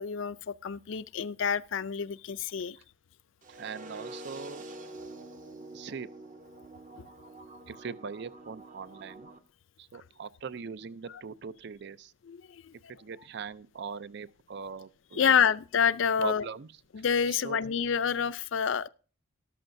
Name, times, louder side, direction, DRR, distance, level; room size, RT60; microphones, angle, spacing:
voice 1, 0.0-2.8 7.0-7.1 12.3-12.7 15.2-16.5 16.9-18.9, left 7 dB, 65° left, 0.5 m, -28 dB
sound 1, 3.4-9.4, right 2 dB, 40° right, 0.9 m, -46 dB
voice 2, 3.5-4.7 5.7-6.1 7.7-9.3 9.8-12.1 13.0-15.3 16.2-16.7 17.3-17.6, right 5 dB, 55° right, 0.5 m, -41 dB
13.5 x 12.0 x 2.6 m
head